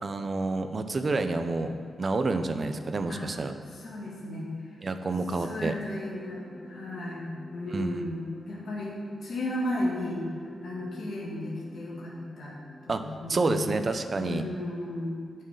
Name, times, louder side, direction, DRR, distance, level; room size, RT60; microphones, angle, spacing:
voice 1, 0.0-3.5 4.8-5.7 7.7-8.0 12.9-13.0 13.3-14.4, right 3 dB, 30° right, 8 dB, 0.6 m, -29 dB
voice 2, 3.7-4.7 5.3-8.2 8.5-9.0 9.2-12.5 12.8-13.7 14.2-15.1, left 1 dB, 65° left, -6 dB, 2.3 m, -34 dB
sound 1, 5.6-14.1, left 1 dB, 15° left, 1.1 m, -51 dB
16.5 x 6.5 x 3.8 m, 2.2 s
wide cardioid pair, 175°, 0 cm